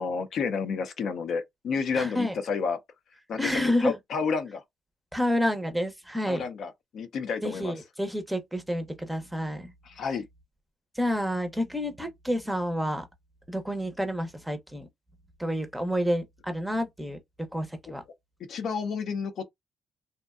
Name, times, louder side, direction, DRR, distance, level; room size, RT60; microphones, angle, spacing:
voice 1, 0.0-2.8 3.3-4.6 6.2-7.7 9.8-10.3 18.5-19.4, left 5 dB, 65° left, 0.5 m, -30 dB
voice 2, 1.9-2.3 3.4-3.9 5.1-6.4 7.4-9.7 11.0-13.1 13.5-14.9 15.4-17.2 17.5-18.0, equal, 5° right, 0.6 m, -29 dB
2.6 x 2.1 x 2.3 m
cardioid pair, 90°, 0 cm